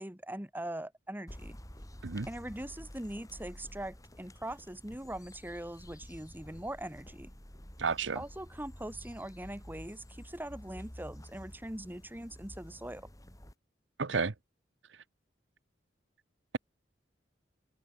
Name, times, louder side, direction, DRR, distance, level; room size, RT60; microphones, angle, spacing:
voice 1, 0.0-1.6 2.3-7.3 8.1-13.1, right 1 dB, 10° right, 3.0 m, -41 dB
sound 1, 1.3-13.5, equal, 20° left, 5.2 m, -50 dB
voice 2, 7.8-8.2 14.0-14.3, right 4 dB, 90° right, 1.0 m, -31 dB
open air
head